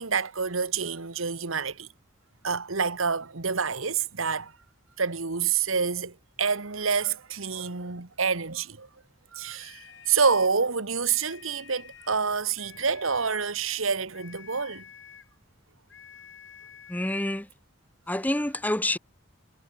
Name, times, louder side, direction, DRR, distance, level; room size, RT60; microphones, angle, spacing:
voice 1, 0.0-1.9 2.4-4.5 5.0-8.9 9.3-9.8 10.1-14.8, right 5 dB, 85° right, 1.6 m, -27 dB
sound 1, 9.5-10.6 11.0-12.3 12.6-13.5 14.1-15.4 15.9-17.2, left 7 dB, 65° left, 4.2 m, -50 dB
voice 2, 16.9-17.5 18.1-19.0, left 1 dB, 10° left, 1.0 m, -27 dB
head